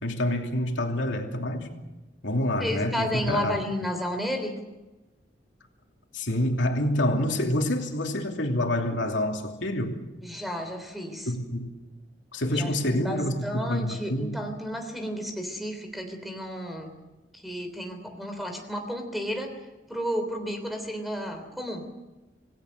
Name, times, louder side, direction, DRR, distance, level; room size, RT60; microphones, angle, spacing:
voice 1, 0.0-1.7 2.2-3.6 6.1-10.0 11.3-11.7 12.3-14.4, left 1 dB, 85° left, 2.8 m, -27 dB
voice 2, 2.6-4.6 10.2-11.3 12.5-16.9 17.4-19.5 19.9-21.8, equal, ahead, 3.4 m, -32 dB
27.5 x 18.0 x 6.6 m
head